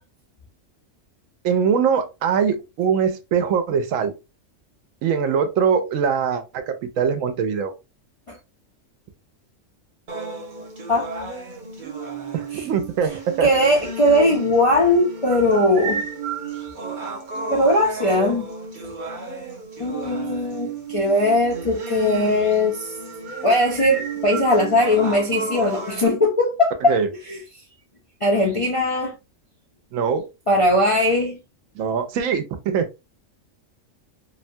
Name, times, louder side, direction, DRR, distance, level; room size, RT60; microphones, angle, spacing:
voice 1, 1.4-4.1 5.0-7.7 12.3-13.5 26.9-27.1 29.9-30.3 31.7-32.9, right 6 dB, 80° right, 1.0 m, -22 dB
sound 1, 10.1-26.1, right 4 dB, 50° right, 0.6 m, -33 dB
voice 2, 13.4-16.0 17.5-18.5 19.8-22.9 23.4-27.0 27.3-27.4 28.2-29.2 30.5-31.4, left 1 dB, 50° left, 0.4 m, -19 dB
2.8 x 2.2 x 2.6 m
omnidirectional pair, 1.3 m